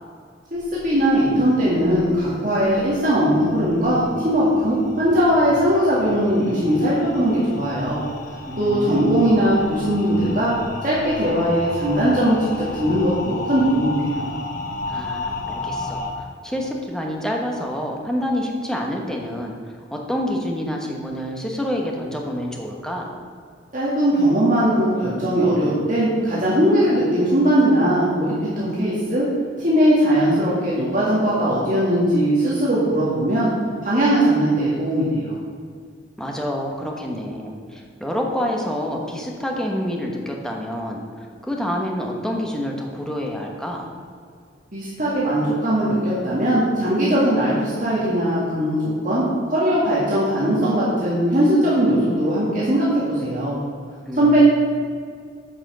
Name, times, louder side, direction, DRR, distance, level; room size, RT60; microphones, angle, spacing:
voice 1, 0.5-8.0 8.6-10.5 10.8-14.2 23.7-29.3 29.6-33.5 33.8-35.3 44.7-53.5 54.1-54.4, equal, 40° right, -8 dB, 2.0 m, -19 dB
sound 1, 0.6-16.1, left 3 dB, 40° left, 1.0 m, -34 dB
voice 2, 8.5-9.4 14.9-19.5 19.9-23.1 36.2-41.0 41.5-43.9 54.1-54.4, equal, 5° left, 0 dB, 1.1 m, -27 dB
8.9 x 5.9 x 6.8 m, 2.1 s
head